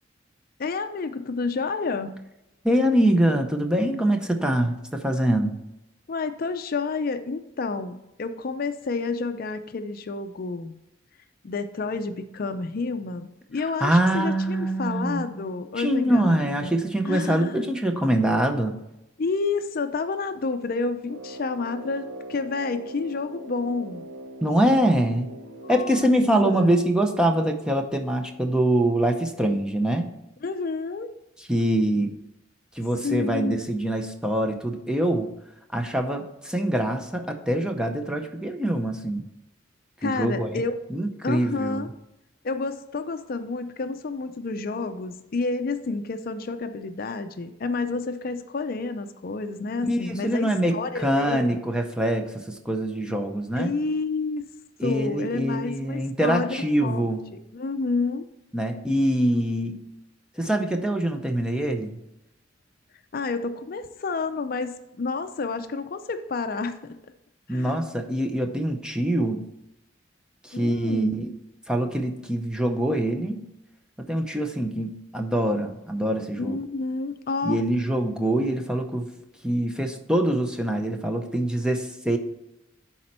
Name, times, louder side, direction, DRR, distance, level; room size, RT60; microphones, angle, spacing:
voice 1, 0.6-2.3 6.1-10.7 11.4-16.7 17.1-17.6 19.2-24.0 25.6-26.1 26.4-26.7 30.4-31.1 33.0-33.6 40.0-40.7 41.2-41.9 42.4-51.6 53.6-54.4 54.8-57.1 57.5-58.3 63.1-67.0 67.5-67.8 70.5-71.2 76.3-77.6, left 4 dB, 50° left, 9 dB, 0.5 m, -29 dB
voice 2, 2.6-5.5 13.8-15.3 15.8-18.8 24.4-25.3 25.7-30.1 31.5-32.1 32.7-35.3 35.7-39.2 40.0-40.6 40.9-41.8 49.8-53.8 54.8-57.2 58.5-59.8 60.4-62.0 67.5-69.4 70.4-71.3 71.7-73.5 74.1-76.6 77.4-79.1 79.4-82.2, right 1 dB, 5° right, 4 dB, 0.7 m, -24 dB
Brass instrument, 21.0-26.6, right 1 dB, 75° right, 0.7 m, -41 dB
11.0 x 4.3 x 4.3 m, 0.91 s
head